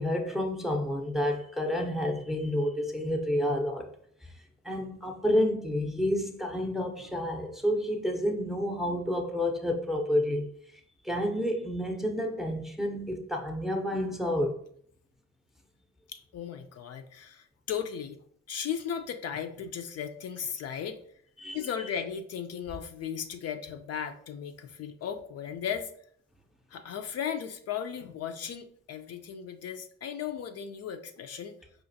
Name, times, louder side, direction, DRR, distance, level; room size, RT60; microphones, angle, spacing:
voice 1, 0.0-3.9 4.6-10.5 11.0-14.6 21.4-21.6, left 1 dB, ahead, 0.5 m, -29 dB
voice 2, 16.1-18.2 18.5-21.0 21.5-25.9 26.7-31.5, left 8 dB, 55° left, 0.4 m, -36 dB
4.9 x 2.5 x 2.6 m
cardioid pair, 90°, 30 cm